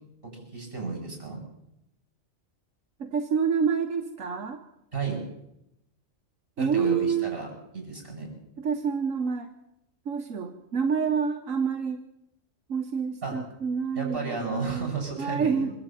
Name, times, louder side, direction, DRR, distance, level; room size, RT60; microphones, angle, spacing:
voice 1, 0.2-1.4 4.9-5.2 6.6-7.5 7.7-8.3 13.2-13.4 13.9-15.7, right 4 dB, 45° right, 1 dB, 8.2 m, -33 dB
voice 2, 3.0-4.6 6.6-7.4 8.6-9.5 10.0-12.0 12.7-14.9 15.2-15.7, right 6 dB, 85° right, 4 dB, 1.7 m, -28 dB
24.5 x 12.5 x 9.1 m, 0.85 s
omnidirectional pair, 1.3 m